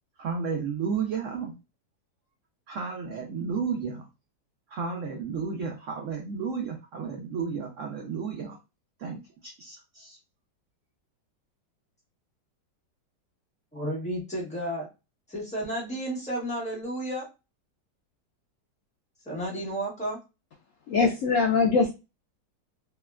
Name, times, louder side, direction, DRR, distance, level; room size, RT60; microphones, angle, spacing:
voice 1, 0.2-1.6 2.7-4.1 4.7-8.6 9.0-10.2, right 5 dB, 85° right, 2 dB, 0.6 m, -32 dB
voice 2, 13.7-14.9 15.3-17.3 19.2-20.2, right 1 dB, 5° left, -3 dB, 0.7 m, -32 dB
voice 3, 20.9-21.9, left 4 dB, 90° left, 1 dB, 0.7 m, -22 dB
3.3 x 2.1 x 2.2 m, 0.27 s
omnidirectional pair, 1.9 m